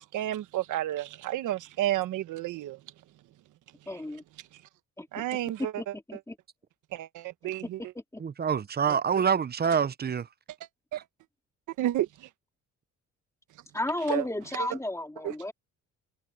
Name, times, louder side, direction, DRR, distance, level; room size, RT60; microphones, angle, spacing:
voice 1, 0.0-2.8 5.1-5.7 6.9-7.8 8.9-9.2 10.9-11.0 11.8-12.3 14.1-14.2 15.2-15.3, right 13 dB, 85° right, 1.3 m, -31 dB
voice 2, 3.9-4.2 5.0-5.1 5.6-6.4 7.4-7.5 7.9-8.2 13.7-15.5, left 1 dB, 10° left, 2.4 m, -33 dB
voice 3, 8.2-10.3, right 7 dB, 30° right, 0.8 m, -26 dB
cardioid pair, 90°, 30 cm